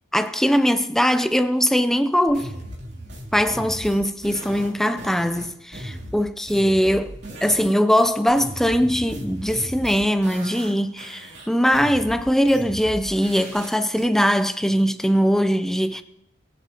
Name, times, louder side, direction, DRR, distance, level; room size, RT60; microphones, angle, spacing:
voice 1, 0.1-2.5 3.3-16.0, equal, ahead, 0.4 m, -21 dB
sound 1, 2.3-7.7 8.0-10.7 11.0-14.0, equal, 60° right, 3.0 m, -37 dB
22.0 x 8.4 x 2.9 m
head